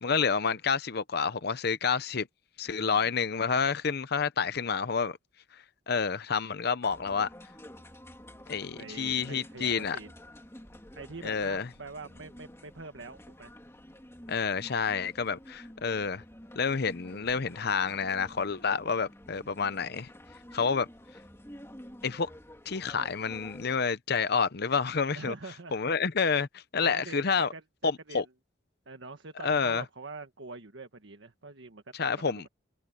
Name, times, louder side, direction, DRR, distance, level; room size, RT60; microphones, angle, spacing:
voice 1, 0.0-2.3 2.6-5.2 5.9-7.3 8.5-10.0 11.2-11.7 14.3-16.2 16.6-20.1 20.5-20.9 22.0-22.3 22.7-25.3 25.7-27.5 27.8-28.2 29.4-29.8 32.0-32.4, left 5 dB, 55° left, 0.7 m, -29 dB
voice 2, 2.6-3.1 8.8-10.1 11.0-13.5 25.1-25.8 26.8-28.3 28.9-32.5, right 3 dB, 70° right, 1.5 m, -45 dB
sound 1, 6.8-23.8, equal, 15° left, 2.6 m, -50 dB
head